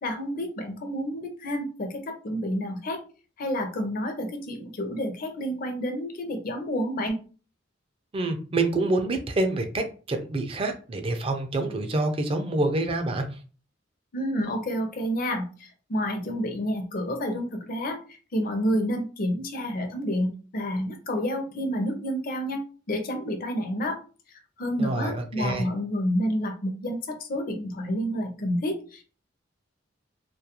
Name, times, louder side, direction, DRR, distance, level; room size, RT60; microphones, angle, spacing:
voice 1, 0.0-3.0 3.4-7.2 14.1-22.6 22.9-24.0 24.3-29.0, equal, 50° left, 5 dB, 0.5 m, -29 dB
voice 2, 8.1-13.3 24.8-25.7, right 2 dB, 30° right, 6 dB, 0.4 m, -27 dB
2.3 x 2.1 x 2.8 m, 0.37 s
head